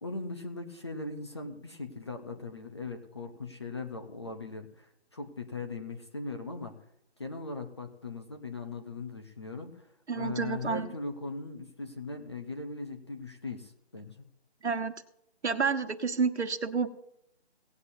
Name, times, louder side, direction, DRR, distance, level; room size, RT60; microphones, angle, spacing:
voice 1, 0.0-6.7 7.2-14.2, left 3 dB, 25° left, 5 dB, 0.7 m, -39 dB
voice 2, 10.1-10.9 14.6-14.9 15.4-16.9, right 5 dB, 75° right, 9 dB, 1.4 m, -29 dB
18.0 x 9.4 x 2.7 m, 0.75 s
figure-of-eight pair, 165°, 33 cm